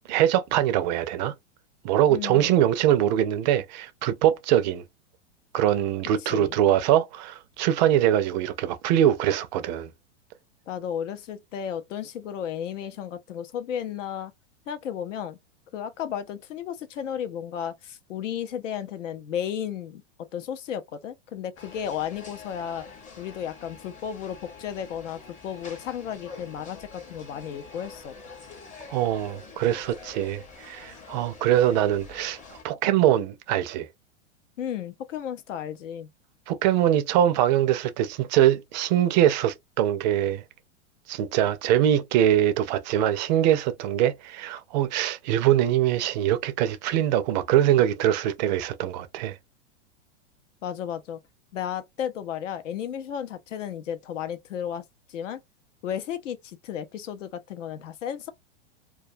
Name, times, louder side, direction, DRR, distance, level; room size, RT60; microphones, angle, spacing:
voice 1, 0.1-1.3 1.8-4.8 5.5-9.9 28.9-32.4 32.6-33.9 36.5-40.4 41.1-49.4, right 11 dB, 40° right, 0.4 m, -23 dB
voice 2, 2.1-2.6 6.3-6.6 10.7-14.3 14.7-15.4 15.7-22.9 23.2-28.2 34.6-36.1 50.6-51.2 51.5-54.8 55.1-55.4 55.8-58.3, left 9 dB, 85° left, 0.6 m, -33 dB
sound 1, 21.6-32.6, left 4 dB, 20° left, 0.6 m, -46 dB
2.3 x 2.2 x 2.6 m
hypercardioid pair, 130°, 36 cm